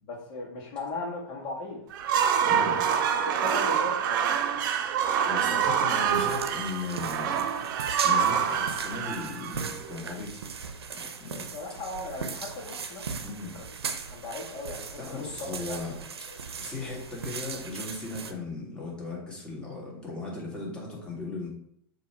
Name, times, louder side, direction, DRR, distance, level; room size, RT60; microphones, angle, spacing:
voice 1, 0.0-1.8 2.1-2.9 3.3-4.2 7.2-7.3 11.3-13.1 13.5-13.7 14.1-15.3 15.7-15.8 16.3-16.4, left 3 dB, 45° left, -3 dB, 1.8 m, -38 dB
sound 1, 1.9-10.0, right 8 dB, 55° right, 0.7 m, -26 dB
voice 2, 2.4-2.8 5.0-7.4 8.0-10.4 10.9-11.5 13.2-13.5 15.0-16.0 16.6-21.5, left 3 dB, 5° left, -4 dB, 2.2 m, -37 dB
sound 2, 6.1-18.3, right 5 dB, 85° right, 0.7 m, -39 dB
6.8 x 3.0 x 4.6 m, 0.72 s
hypercardioid pair, 115°, 13 cm